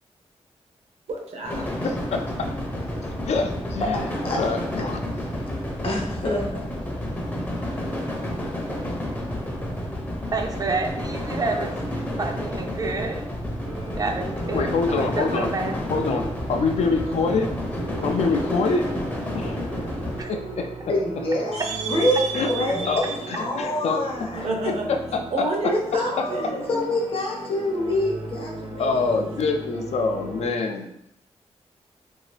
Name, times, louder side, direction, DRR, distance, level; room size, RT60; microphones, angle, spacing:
voice 1, 1.1-1.6 21.5-23.4 24.3-24.9 25.3-26.9, right 3 dB, 70° right, 1 dB, 0.7 m, -30 dB
sound 1, 1.4-20.2, left 1 dB, 15° left, 0.5 m, -30 dB
voice 2, 3.3-4.0 4.4-5.0 14.5-15.5 15.9-17.5 18.0-18.9 19.3-19.6 20.3-20.7 22.3-22.5 22.8-24.0 24.9-25.2 28.8-31.1, left 4 dB, 70° left, 5 dB, 0.4 m, -25 dB
voice 3, 3.8-4.4 5.8-6.6 20.9-21.6 21.9-24.5 25.6-29.6, left 1 dB, 55° left, -1 dB, 0.8 m, -26 dB
voice 4, 10.3-11.7 12.2-13.2 13.9-15.8 20.2-20.3, right 3 dB, 35° right, 4 dB, 0.4 m, -29 dB
sound 2, 13.6-30.5, right 1 dB, 90° right, 1.1 m, -37 dB
2.8 x 2.7 x 3.2 m, 0.79 s
wide cardioid pair, 135°, 11 cm